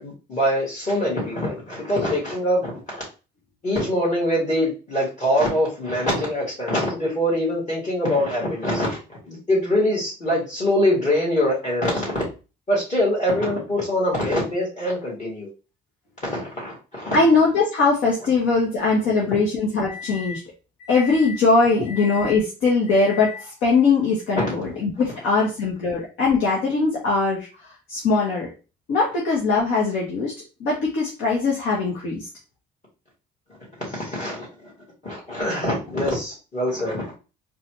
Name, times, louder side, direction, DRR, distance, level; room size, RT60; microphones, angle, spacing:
voice 1, 0.0-3.0 3.6-12.2 12.7-15.5 16.2-17.2 24.4-24.5 33.8-34.7 35.0-37.1, left 1 dB, 35° left, -5 dB, 2.1 m, -24 dB
voice 2, 17.1-20.4 20.8-27.5 27.9-28.5 28.9-30.3 30.6-32.3, left 4 dB, 80° left, -3 dB, 1.2 m, -21 dB
3.9 x 2.5 x 3.0 m, 0.32 s
supercardioid pair, 70°, 20 cm